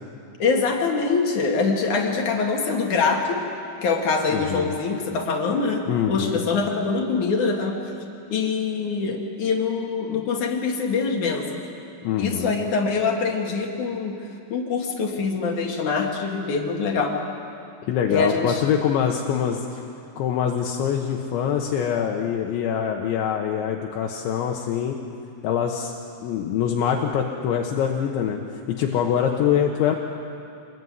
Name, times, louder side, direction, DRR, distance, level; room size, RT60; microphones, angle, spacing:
voice 1, 0.4-3.4 3.8-7.8 8.3-11.6 12.2-17.2 18.1-18.6, left 4 dB, 50° left, 1 dB, 2.7 m, -24 dB
voice 2, 4.3-4.7 5.9-6.4 12.0-12.5 17.9-19.8 20.2-25.0 25.4-25.9 26.2-28.4 28.7-30.0, left 8 dB, 75° left, 1 dB, 3.3 m, -24 dB
26.0 x 20.5 x 9.6 m, 2.5 s
omnidirectional pair, 5.7 m